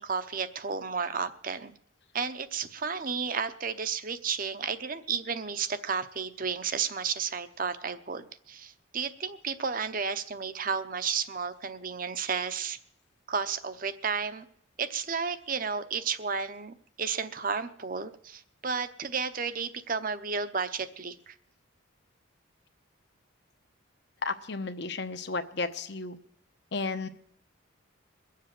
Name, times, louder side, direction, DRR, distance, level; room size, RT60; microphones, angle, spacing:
voice 1, 0.0-1.7 2.1-12.8 13.3-14.5 14.8-21.3, right 5 dB, 40° right, 12 dB, 0.8 m, -32 dB
voice 2, 24.2-26.2 26.7-27.1, left 3 dB, 55° left, 8 dB, 1.0 m, -33 dB
22.5 x 7.5 x 7.5 m, 0.66 s
head